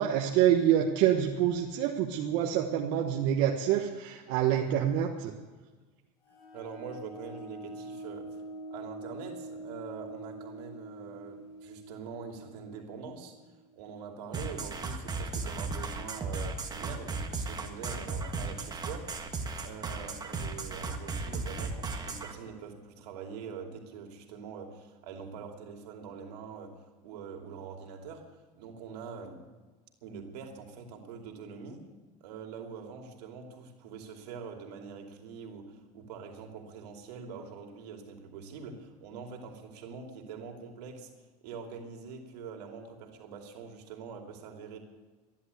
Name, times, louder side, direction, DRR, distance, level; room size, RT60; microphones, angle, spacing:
voice 1, 0.0-5.3, right 10 dB, 65° right, 1 dB, 1.3 m, -26 dB
sound 1, 6.3-13.7, right 1 dB, 85° left, 4.7 m, -45 dB
voice 2, 6.5-8.4 8.7-13.4 13.7-19.1 19.6-29.4 30.0-31.9 32.2-41.1 41.4-44.8, right 6 dB, 85° right, 3 dB, 2.7 m, -44 dB
sound 2, 14.3-22.3, right 3 dB, 20° right, 1.8 m, -35 dB
14.0 x 11.0 x 8.2 m, 1.3 s
supercardioid pair, 115°, 20 cm